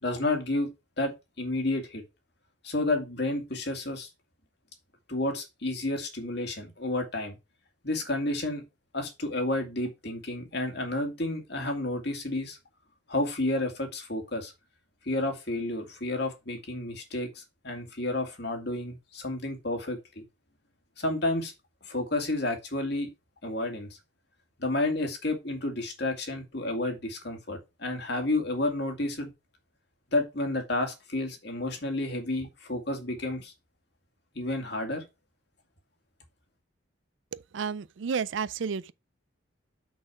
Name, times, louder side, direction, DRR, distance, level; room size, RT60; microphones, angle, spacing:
voice 1, 0.0-0.7 1.0-1.1 1.4-2.0 2.6-4.1 5.1-7.4 7.8-8.6 8.9-12.6 13.1-14.5 15.1-20.2 21.0-21.5 21.8-23.1 23.4-23.9 24.6-29.3 30.1-33.5 34.4-35.0, left 2 dB, 55° left, 2.2 m, -31 dB
voice 2, 37.3-38.9, right 6 dB, 70° right, 0.4 m, -32 dB
6.4 x 6.1 x 4.8 m
head